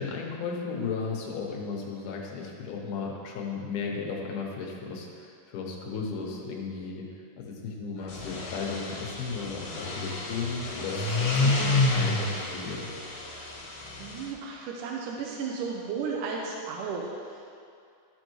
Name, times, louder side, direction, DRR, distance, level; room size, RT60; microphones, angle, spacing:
voice 1, 0.0-7.1 7.4-12.9, left 5 dB, 85° left, -1 dB, 2.5 m, -35 dB
sound 1, 8.0-14.3, left 2 dB, 65° left, 2.1 m, -29 dB
voice 2, 14.0-17.6, right 5 dB, 90° right, -1 dB, 2.2 m, -34 dB
12.5 x 5.3 x 3.1 m, 2.3 s
omnidirectional pair, 3.6 m